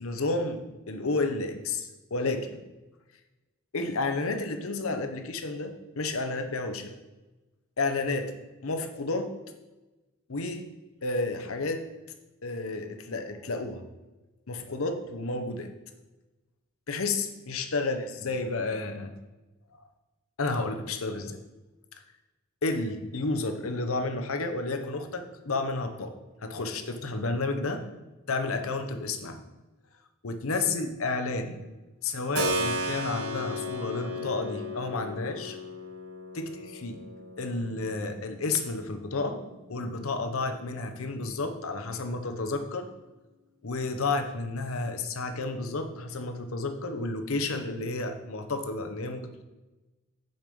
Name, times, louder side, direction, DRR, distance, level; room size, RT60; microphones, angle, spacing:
voice 1, 0.0-2.6 3.7-7.0 7.8-8.3 8.6-9.3 10.3-10.7 11.0-11.8 12.4-13.8 14.5-15.7 16.9-19.1 20.4-21.4 22.6-26.1 26.4-27.9 28.3-29.4 30.2-31.6 32.0-35.6 36.3-37.0 37.4-39.4 39.7-42.9 43.6-49.4, left 3 dB, 75° left, 6 dB, 0.9 m, -31 dB
Keyboard (musical), 32.3-41.0, equal, 85° right, 1.1 m, -36 dB
7.9 x 5.3 x 5.4 m, 1.1 s
head